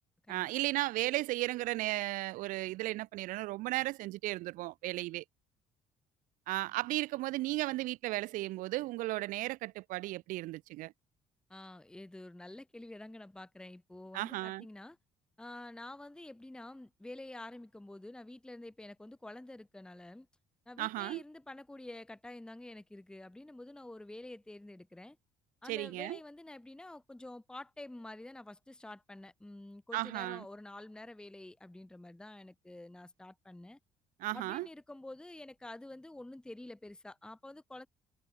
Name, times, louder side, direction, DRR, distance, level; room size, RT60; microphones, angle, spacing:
voice 1, 0.3-5.2 6.5-10.9 14.1-14.7 20.8-21.2 25.7-26.2 29.9-30.4 34.2-34.7, right 18 dB, 75° right, 0.4 m, -35 dB
voice 2, 11.5-15.0 15.4-20.3 20.7-25.2 25.6-33.8 34.3-37.9, left 1 dB, 5° left, 0.7 m, -48 dB
supercardioid pair, 75°, 14 cm